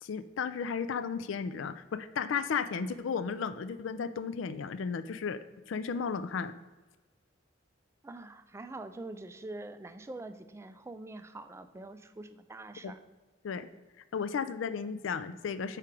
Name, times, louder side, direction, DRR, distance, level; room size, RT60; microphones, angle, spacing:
voice 1, 0.0-5.4 5.7-6.5 12.8-12.9 13.4-13.7 14.1-15.8, left 6 dB, 75° left, 13 dB, 0.4 m, -34 dB
voice 2, 8.0-13.0, right 2 dB, 15° right, 10 dB, 0.3 m, -44 dB
4.9 x 4.5 x 5.8 m, 1.2 s
head